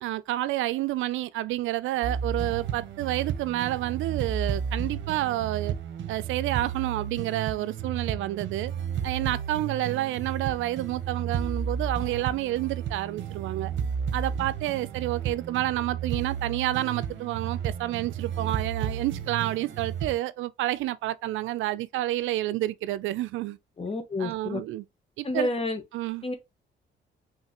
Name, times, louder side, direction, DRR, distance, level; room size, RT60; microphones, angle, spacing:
voice 1, 0.0-5.7 6.1-8.7 9.0-13.7 14.1-23.6 24.2-24.8 25.2-25.5 25.9-26.2, right 15 dB, 85° right, 0.4 m, -29 dB
sound 1, 2.0-20.2, right 7 dB, 70° right, 0.9 m, -33 dB
voice 2, 23.8-24.6 25.2-25.8 26.2-26.3, left 2 dB, 30° left, 1.3 m, -29 dB
5.6 x 3.2 x 2.9 m
cardioid pair, 90°, 20 cm